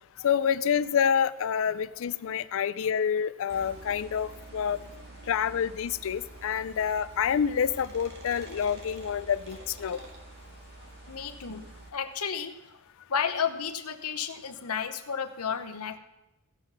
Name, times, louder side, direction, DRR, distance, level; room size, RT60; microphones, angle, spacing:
voice 1, 0.2-4.8 5.3-10.0, left 7 dB, 65° left, 15 dB, 0.4 m, -27 dB
sound 1, 3.5-11.9, right 2 dB, 50° right, 1.9 m, -47 dB
voice 2, 11.1-12.8 13.1-16.0, left 7 dB, 80° left, 7 dB, 1.0 m, -32 dB
16.5 x 5.8 x 6.0 m, 0.96 s
head